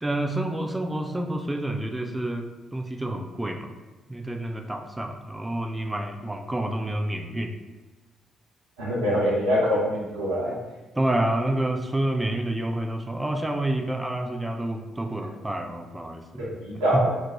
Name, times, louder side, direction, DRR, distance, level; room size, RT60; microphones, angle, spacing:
voice 1, 0.0-2.5 2.7-3.7 4.1-7.5 11.0-17.1, right 1 dB, 15° right, 3 dB, 0.3 m, -28 dB
voice 2, 8.8-10.5 16.4-17.1, equal, 75° right, -7 dB, 0.7 m, -24 dB
2.4 x 2.1 x 3.0 m, 1.2 s
figure-of-eight pair, 40°, 0 cm